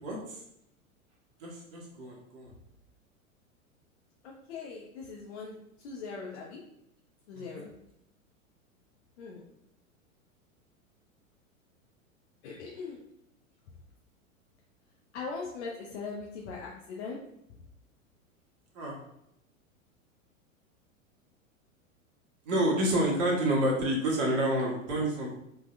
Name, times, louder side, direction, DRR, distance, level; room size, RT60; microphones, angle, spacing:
voice 1, 0.0-0.4 1.4-2.5 7.3-7.6 18.7-19.0 22.4-25.3, right 1 dB, 40° right, -2 dB, 1.2 m, -29 dB
voice 2, 4.2-6.6 7.3-7.7 9.2-9.5 12.4-13.0 15.1-17.2, left 4 dB, 55° left, -2 dB, 0.7 m, -40 dB
3.8 x 2.8 x 2.5 m, 0.79 s
figure-of-eight pair, 95°, 41 cm